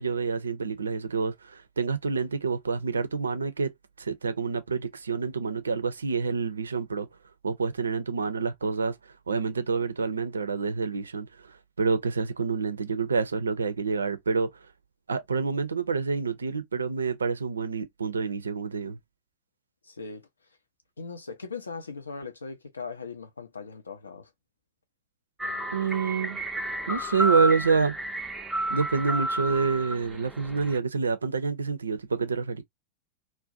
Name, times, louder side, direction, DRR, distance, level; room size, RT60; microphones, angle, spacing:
voice 1, 0.0-3.7 4.0-7.1 7.4-9.0 9.3-11.3 11.8-14.5 15.1-19.0 25.7-26.4 26.9-27.9 28.7-32.6, right 5 dB, 75° right, 0.4 m, -27 dB
voice 2, 19.8-20.2 21.0-24.3, left 4 dB, 75° left, 0.6 m, -39 dB
sound 1, 25.4-30.8, right 1 dB, 5° right, 0.5 m, -31 dB
2.5 x 2.1 x 2.5 m
figure-of-eight pair, 90°, 0 cm